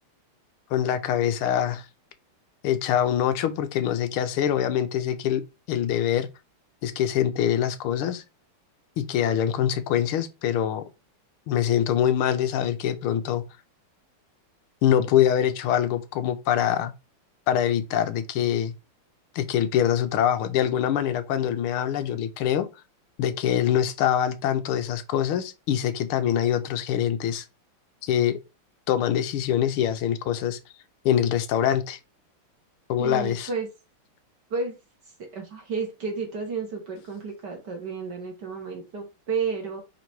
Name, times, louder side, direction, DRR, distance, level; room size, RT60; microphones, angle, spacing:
voice 1, 0.7-1.9 2.6-5.4 5.7-6.3 6.8-8.2 9.0-10.8 11.5-13.4 14.8-16.9 17.5-18.7 19.3-22.7 23.2-27.4 28.0-28.4 28.9-30.6 31.0-32.0 32.9-33.5, left 10 dB, 80° left, 1.6 m, -24 dB
voice 2, 33.0-33.7 34.5-34.8 35.3-39.8, right 5 dB, 55° right, 2.2 m, -31 dB
5.1 x 4.0 x 4.6 m
omnidirectional pair, 2.4 m